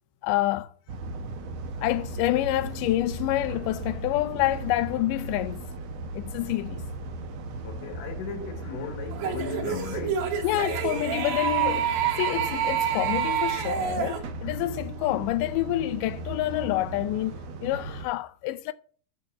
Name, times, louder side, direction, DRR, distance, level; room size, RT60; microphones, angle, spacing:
voice 1, 0.2-0.7 1.8-5.7 6.1-6.8 10.4-17.3 17.6-18.7, left 16 dB, 80° left, 2.0 m, -27 dB
sound 1, 0.9-18.1, right 2 dB, 65° right, 1.7 m, -37 dB
voice 2, 7.6-10.6 12.1-12.4 14.4-14.7, left 6 dB, 60° left, 2.1 m, -38 dB
sound 2, 9.1-14.2, right 9 dB, 80° right, 2.9 m, -28 dB
8.5 x 4.0 x 7.1 m
omnidirectional pair, 4.1 m